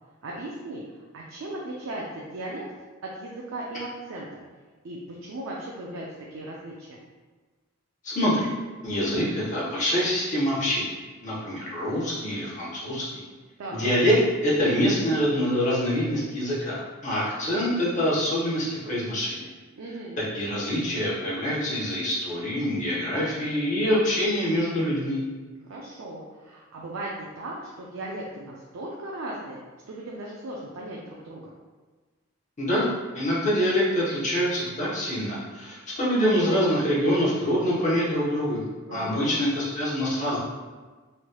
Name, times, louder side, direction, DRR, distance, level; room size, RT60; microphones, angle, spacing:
voice 1, 0.2-2.6 3.0-4.4 4.8-7.0 13.6-13.9 19.8-20.2 25.6-27.1 27.4-29.6 29.9-31.5 38.9-39.4, right 1 dB, 70° right, -3 dB, 0.4 m, -37 dB
voice 2, 8.0-8.5 8.8-10.9 11.2-13.2 13.7-14.2 14.4-19.5 20.3-25.2 32.6-32.9 33.1-38.6 38.9-40.4, equal, 35° left, -7 dB, 0.9 m, -25 dB
3.1 x 2.9 x 2.2 m, 1.3 s
head